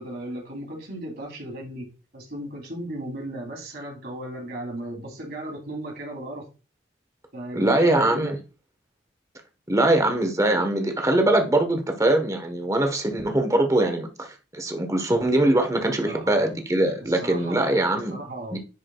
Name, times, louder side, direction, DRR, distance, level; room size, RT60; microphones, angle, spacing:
voice 1, 0.0-1.8 2.1-6.4 7.3-8.3 16.0-16.5 17.0-17.7 17.9-18.6, right 1 dB, 55° right, 3.0 m, -36 dB
voice 2, 7.5-8.4 9.7-18.2 18.5-18.6, right 1 dB, 15° right, 1.1 m, -22 dB
10.5 x 4.9 x 2.3 m
head